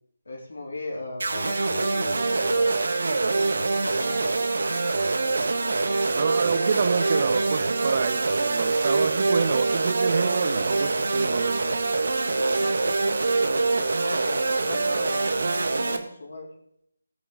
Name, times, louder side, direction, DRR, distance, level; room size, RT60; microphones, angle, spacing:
voice 1, 0.3-2.9 3.8-4.3 12.2-15.3 15.7-16.5, left 2 dB, 65° left, -1 dB, 3.2 m, -37 dB
sound 1, 1.2-16.0, right 3 dB, 60° right, 1.4 m, -24 dB
voice 2, 6.1-11.6, right 6 dB, 40° right, 12 dB, 0.8 m, -28 dB
19.0 x 7.0 x 3.8 m, 0.72 s
figure-of-eight pair, 155°, 0 cm